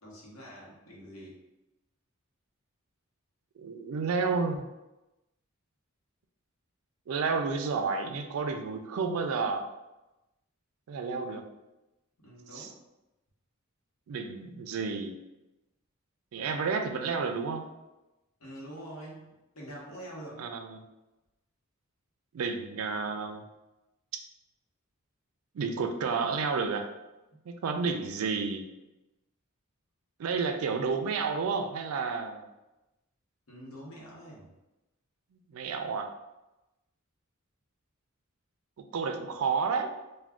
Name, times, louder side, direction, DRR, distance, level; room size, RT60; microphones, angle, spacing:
voice 1, 0.0-1.4 12.2-12.7 18.4-20.4 27.3-27.4 33.5-34.5, right 1 dB, 85° left, -4 dB, 1.0 m, -45 dB
voice 2, 3.6-4.7 7.1-9.6 10.9-11.5 12.5-12.7 14.1-15.1 16.3-17.6 20.4-20.8 22.3-23.4 25.5-26.9 27.5-28.6 30.2-32.4 35.5-36.1 38.9-40.0, right 5 dB, 75° right, 6 dB, 0.4 m, -31 dB
2.4 x 2.2 x 3.4 m, 0.99 s
head